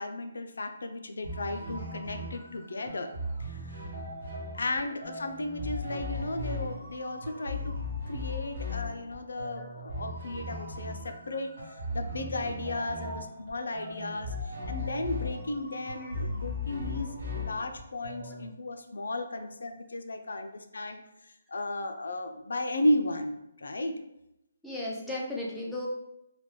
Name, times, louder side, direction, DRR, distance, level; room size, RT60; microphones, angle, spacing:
voice 1, 0.0-3.1 3.4-3.8 4.5-7.7 8.1-11.5 11.9-21.0 21.5-24.0, left 1 dB, 85° left, 6 dB, 0.4 m, -34 dB
sound 1, 1.2-18.5, left 2 dB, 50° right, 0.9 m, -38 dB
voice 2, 24.6-25.9, left 1 dB, ahead, -7 dB, 0.4 m, -37 dB
3.2 x 2.2 x 3.0 m, 0.85 s
hypercardioid pair, 175°, 0 cm